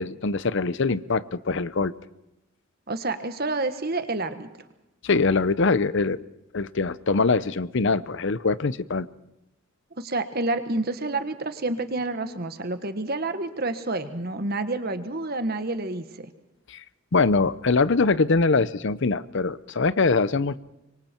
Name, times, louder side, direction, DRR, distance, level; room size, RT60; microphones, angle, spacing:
voice 1, 0.0-1.9 5.0-6.2 6.5-9.1 16.7-16.8 17.1-20.6, left 4 dB, 60° left, 17 dB, 0.7 m, -23 dB
voice 2, 2.9-4.5 10.0-16.1, right 2 dB, 45° right, 9 dB, 1.5 m, -28 dB
26.0 x 23.5 x 4.5 m, 0.92 s
head